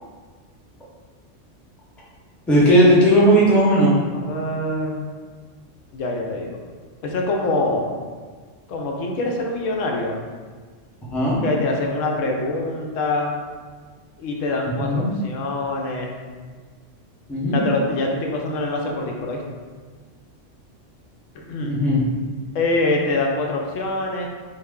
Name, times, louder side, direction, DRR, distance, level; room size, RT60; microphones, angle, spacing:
voice 1, 2.5-3.9 11.1-11.4 14.8-15.1 17.3-17.6 21.6-22.0, equal, ahead, -7 dB, 0.4 m, -16 dB
voice 2, 4.1-5.1 5.9-6.6 7.0-7.9 8.7-10.1 11.4-13.3 14.2-16.2 17.5-19.4 21.3-21.8 22.5-24.3, left 2 dB, 85° left, 1 dB, 0.9 m, -24 dB
3.3 x 2.4 x 3.5 m, 1.5 s
omnidirectional pair, 1.3 m